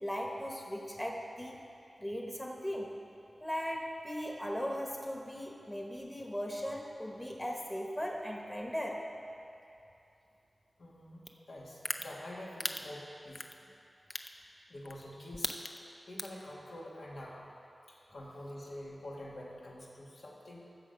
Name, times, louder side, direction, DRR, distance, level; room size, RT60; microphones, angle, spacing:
voice 1, 0.0-1.6 2.0-2.9 3.4-9.1, equal, 10° left, 1 dB, 1.1 m, -38 dB
voice 2, 10.8-13.4 14.1-14.2 14.7-15.5 16.1-17.5 17.9-20.7, left 1 dB, 85° left, -5 dB, 2.1 m, -46 dB
sound 1, 11.3-11.4 11.8-12.0 12.6-12.8 13.3-13.5 14.1-14.3 14.8-15.0 15.3-15.8 16.2-16.4, left 2 dB, 35° left, 0.5 m, -34 dB
15.0 x 6.4 x 5.2 m, 2.7 s
wide cardioid pair, 85°, 0 cm